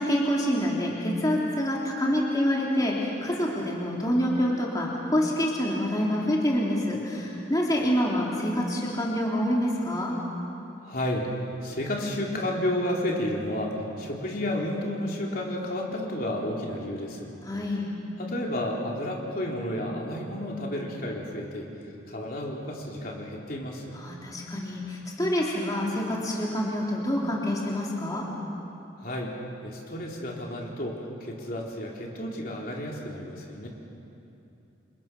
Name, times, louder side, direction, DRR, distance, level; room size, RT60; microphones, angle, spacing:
voice 1, 0.0-10.1 17.4-17.9 24.0-28.3, equal, 20° left, -4 dB, 3.3 m, -27 dB
voice 2, 10.8-11.3 11.6-17.3 18.2-21.7 22.1-24.0 29.0-29.3 29.6-33.7, left 1 dB, 50° left, -2 dB, 3.6 m, -31 dB
29.5 x 28.0 x 6.2 m, 2.8 s
head